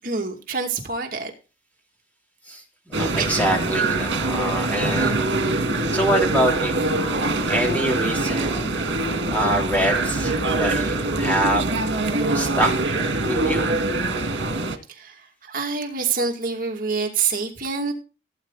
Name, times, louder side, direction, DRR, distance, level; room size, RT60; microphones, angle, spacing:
voice 1, 0.0-1.3 3.2-3.3 14.9-17.9, right 5 dB, 45° right, 2 dB, 2.4 m, -26 dB
voice 2, 2.5-5.4 5.8-8.7 9.3-11.7 12.3-13.0 13.3-13.6, equal, 10° left, 0 dB, 3.5 m, -25 dB
sound 1, 2.9-14.8, right 2 dB, 75° right, 2.1 m, -23 dB
17.0 x 9.3 x 4.1 m, 0.32 s
head